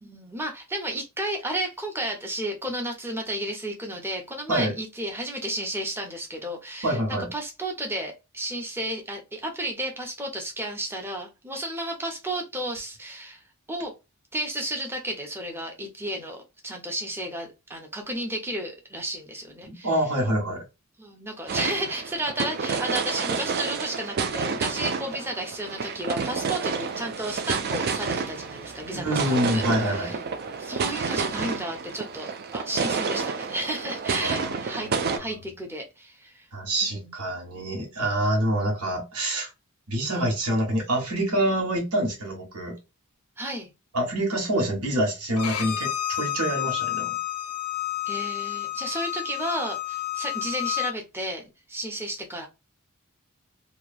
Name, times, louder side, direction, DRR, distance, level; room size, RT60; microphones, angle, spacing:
voice 1, 0.0-13.4 13.7-13.9 14.3-19.9 21.0-30.2 30.6-34.9 35.2-36.5 36.8-37.2 43.4-43.7 48.1-52.5, right 1 dB, 10° right, 0.7 m, -33 dB
voice 2, 6.8-7.3 19.6-20.6 28.9-30.2 34.2-35.4 36.5-39.5 39.9-42.7 43.9-47.1, right 1 dB, 80° right, 1.2 m, -26 dB
sound 1, 21.5-35.2, right 5 dB, 45° right, 0.3 m, -29 dB
Bowed string instrument, 45.4-50.9, left 13 dB, 80° left, 0.5 m, -30 dB
2.9 x 2.2 x 2.4 m
head